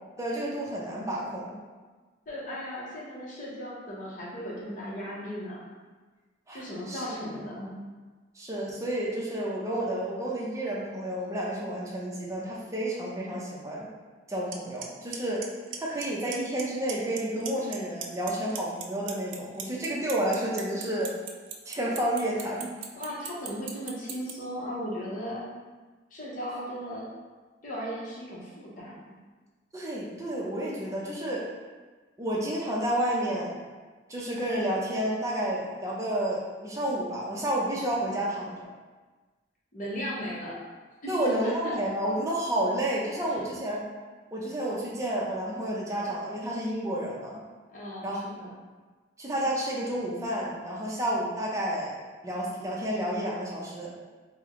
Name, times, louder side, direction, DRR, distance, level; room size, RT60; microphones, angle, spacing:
voice 1, 0.2-1.6 6.5-7.0 8.3-13.9 14.3-15.4 15.8-21.1 21.7-22.7 29.7-31.5 32.2-33.6 34.1-38.7 41.1-43.8 44.3-47.4 48.0-48.2 49.2-52.0 52.2-53.9, right 1 dB, 15° right, -5 dB, 0.5 m, -30 dB
voice 2, 2.3-5.6 6.5-7.8 22.9-25.5 26.1-27.0 27.6-29.1 39.7-40.6 41.0-41.7 43.3-43.5 47.7-48.5, equal, 45° left, -6 dB, 0.8 m, -36 dB
Clock, 14.5-14.6 14.8-15.2 15.4-16.0 16.3-16.6 16.9-17.8 18.0-24.3, right 10 dB, 80° right, 0.4 m, -36 dB
3.2 x 2.1 x 3.6 m, 1.3 s
head